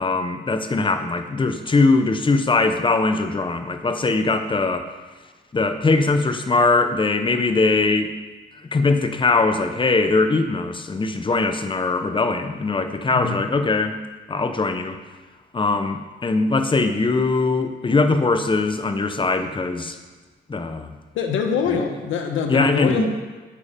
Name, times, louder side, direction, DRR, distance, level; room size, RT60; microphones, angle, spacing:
voice 1, 0.0-4.9 5.5-8.1 8.6-14.0 14.3-15.0 15.5-20.0 20.5-20.9 21.7-21.8 22.5-23.1, left 3 dB, 25° left, 8 dB, 0.9 m, -21 dB
voice 2, 21.1-23.1, left 6 dB, 80° left, 4 dB, 1.2 m, -24 dB
8.8 x 8.6 x 5.1 m, 1.3 s
cardioid pair, 90°, 20 cm